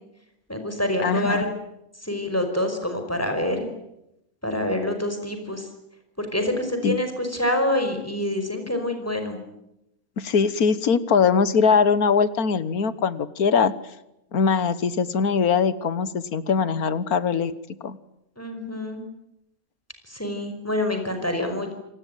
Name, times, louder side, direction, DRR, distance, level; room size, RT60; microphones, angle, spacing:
voice 1, 0.5-1.5 2.0-3.6 4.4-5.7 6.2-9.4 18.4-19.0 20.1-21.7, left 1 dB, 10° left, 5 dB, 5.2 m, -26 dB
voice 2, 1.0-1.4 6.8-7.0 10.2-13.7 14.3-17.5 17.8-18.0, left 5 dB, 85° left, 16 dB, 1.8 m, -21 dB
28.0 x 19.5 x 9.3 m, 0.85 s
omnidirectional pair, 1.5 m